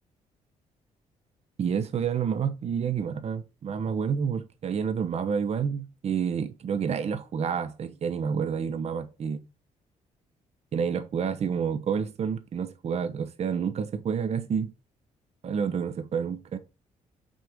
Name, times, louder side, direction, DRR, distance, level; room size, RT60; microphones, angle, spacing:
voice 1, 1.6-9.4 10.7-14.7 15.4-16.6, right 7 dB, 50° right, 1.0 m, -29 dB
6.5 x 4.4 x 5.0 m
cardioid pair, 100°, 14 cm